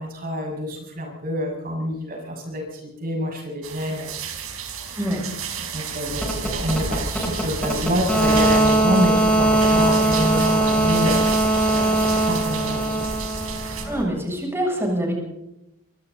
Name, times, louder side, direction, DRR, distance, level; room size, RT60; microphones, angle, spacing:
voice 1, 0.0-4.1 4.9-5.0 5.7-13.1, equal, 45° right, 0 dB, 6.9 m, -27 dB
sound 1, 3.6-13.9, right 7 dB, 90° right, 5.0 m, -33 dB
sound 2, 6.1-14.0, right 1 dB, 5° left, 7.2 m, -21 dB
voice 2, 13.8-15.1, equal, 10° right, -1 dB, 7.7 m, -25 dB
26.5 x 25.0 x 4.2 m, 0.86 s
head